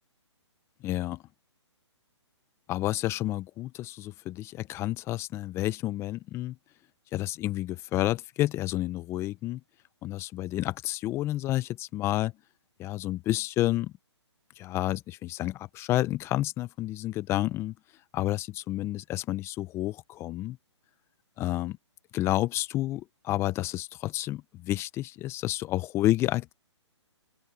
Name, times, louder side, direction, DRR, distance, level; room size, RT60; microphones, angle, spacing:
voice 1, 0.8-1.2 2.7-6.6 7.1-9.6 10.0-12.3 12.8-13.9 14.6-17.7 18.1-20.6 21.4-21.8 22.1-26.5, left 15 dB, 15° left, 0.8 m, -30 dB
open air
hypercardioid pair, 150°, 15 cm